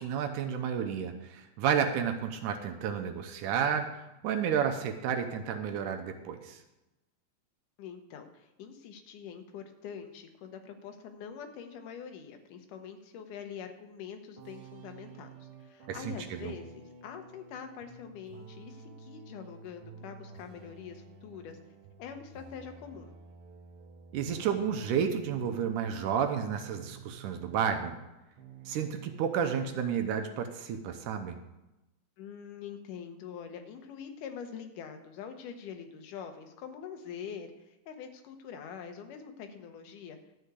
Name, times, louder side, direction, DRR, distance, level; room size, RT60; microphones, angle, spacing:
voice 1, 0.0-6.6 15.9-16.5 24.1-28.0 28.7-31.4, right 7 dB, 80° right, 5 dB, 2.2 m, -31 dB
voice 2, 7.8-21.6 22.0-23.1 32.2-40.2, left 7 dB, 80° left, 6 dB, 2.5 m, -44 dB
sound 1, 14.4-28.1 28.4-29.6, right 4 dB, 60° right, 1.6 m, -51 dB
13.0 x 4.8 x 8.2 m, 0.98 s
omnidirectional pair, 3.7 m